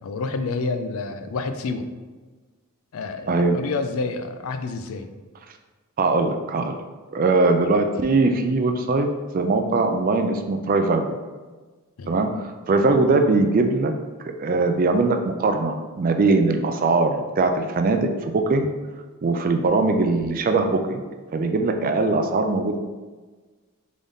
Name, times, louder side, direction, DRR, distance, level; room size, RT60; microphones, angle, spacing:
voice 1, 0.0-1.9 2.9-5.1 12.0-12.2, left 3 dB, 65° left, 8 dB, 0.4 m, -29 dB
voice 2, 3.3-3.6 6.0-6.8 7.1-9.1 9.3-11.2 12.1-13.9 14.4-18.7 19.2-21.0 21.3-22.8, right 3 dB, 40° right, 6 dB, 0.3 m, -21 dB
3.9 x 3.7 x 3.5 m, 1.3 s
head